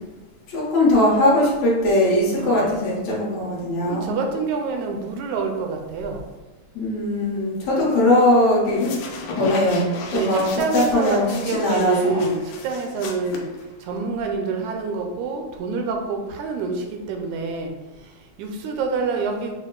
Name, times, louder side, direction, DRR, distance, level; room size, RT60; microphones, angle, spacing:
voice 1, 0.5-4.1 6.7-9.0 9.4-10.5 10.7-12.2, left 1 dB, 65° left, -5 dB, 2.2 m, -20 dB
voice 2, 2.4-2.9 3.9-6.3 7.6-7.8 10.1-13.4 13.8-17.7 18.0-19.5, right 4 dB, 80° right, 3 dB, 1.9 m, -27 dB
sound 1, 8.7-14.0, left 4 dB, 90° left, 2.2 m, -35 dB
6.2 x 2.1 x 3.8 m, 1.2 s
omnidirectional pair, 3.4 m